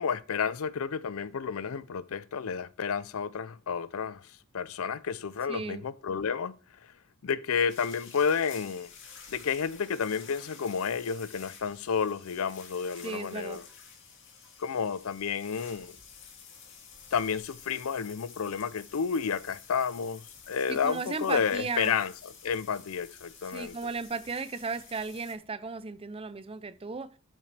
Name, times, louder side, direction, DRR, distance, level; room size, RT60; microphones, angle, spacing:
voice 1, 0.0-4.2 4.5-6.5 7.2-8.9 9.3-13.6 14.6-15.9 17.1-22.1 22.4-23.7, left 6 dB, 80° left, 0.5 m, -31 dB
voice 2, 5.5-5.8 13.0-13.6 20.7-22.0 23.5-27.1, right 4 dB, 25° right, 0.6 m, -35 dB
sound 1, 7.7-25.3, left 6 dB, 60° left, 2.0 m, -51 dB
12.0 x 5.4 x 3.4 m
head